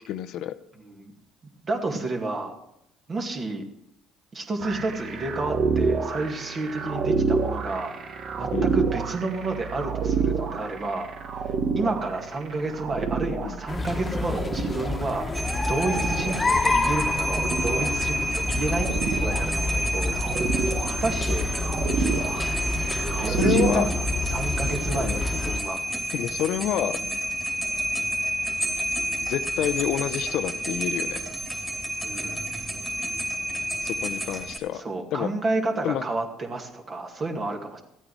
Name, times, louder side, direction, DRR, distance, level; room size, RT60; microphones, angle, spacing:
voice 1, 0.1-0.6 8.5-8.7 13.4-13.6 23.2-23.9 24.9-25.2 26.1-27.2 29.2-31.2 33.8-34.8 35.1-35.3 35.8-36.0, left 11 dB, 70° left, 12 dB, 0.6 m, -28 dB
voice 2, 0.8-1.1 1.6-2.6 3.1-3.7 4.3-8.0 8.4-11.1 11.4-15.3 15.7-20.6 20.9-21.5 23.1-25.8 32.0-32.5 34.7-37.8, right 2 dB, 40° right, 3 dB, 2.2 m, -30 dB
sound 1, 4.6-23.8, right 5 dB, 60° right, 1.3 m, -29 dB
sound 2, 13.7-25.6, left 2 dB, 25° left, 1.3 m, -28 dB
sound 3, 15.3-34.6, right 1 dB, 5° right, 2.7 m, -30 dB
14.5 x 8.9 x 4.7 m, 0.83 s
supercardioid pair, 70°, 0 cm